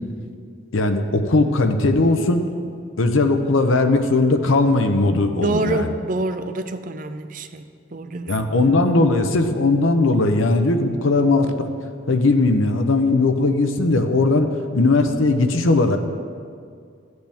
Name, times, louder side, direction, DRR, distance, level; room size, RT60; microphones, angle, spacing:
voice 1, 0.7-2.4 3.0-5.9 8.3-11.5 12.1-16.0, left 2 dB, 80° left, 7 dB, 0.8 m, -18 dB
voice 2, 5.4-8.5, right 2 dB, 40° right, 9 dB, 0.5 m, -27 dB
15.0 x 7.9 x 3.5 m, 2.2 s
head